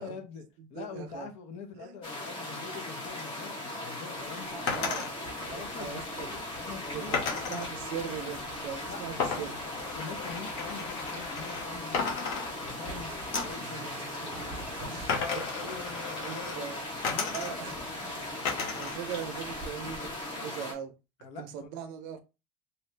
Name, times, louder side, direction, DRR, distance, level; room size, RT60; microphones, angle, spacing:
voice 1, 0.0-0.4 0.7-4.9 5.5-7.6 8.9-9.3 9.9-12.2 12.6-14.4 14.7-17.8 21.2-21.7, left 5 dB, 45° left, 0.8 m, -44 dB
voice 2, 0.6-1.3 1.8-2.0 4.5-6.4 6.9-9.6 13.6-14.5 14.8-17.0 17.3-17.8 18.4-20.9 21.4-22.2, right 8 dB, 60° right, 0.6 m, -41 dB
sound 1, 2.0-20.7, left 1 dB, 30° left, 1.3 m, -39 dB
sound 2, 4.7-5.1 7.1-7.7 9.2-11.7 11.9-12.9 13.3-13.7 15.1-16.6 17.0-17.8 18.4-19.0 19.3-20.1, left 5 dB, 75° left, 1.1 m, -34 dB
sound 3, 5.1-19.7, right 2 dB, 10° right, 0.7 m, -49 dB
2.8 x 2.6 x 3.3 m
cardioid pair, 160°, 16 cm